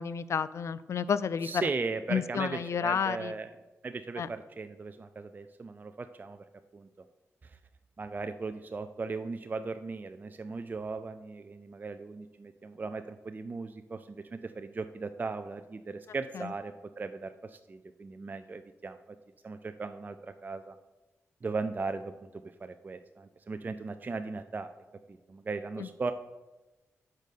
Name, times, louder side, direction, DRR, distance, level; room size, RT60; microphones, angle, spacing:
voice 1, 0.0-1.6 2.1-3.3 4.2-4.3 16.3-16.5 25.8-25.9, left 7 dB, 65° left, 15 dB, 0.3 m, -31 dB
voice 2, 1.4-3.5 3.8-6.4 6.7-6.9 7.4-7.6 8.0-19.0 19.4-20.8 21.4-24.7 25.1-26.1, right 4 dB, 35° right, 9 dB, 0.3 m, -37 dB
5.3 x 5.1 x 6.5 m, 1.1 s
cardioid pair, 65°, 5 cm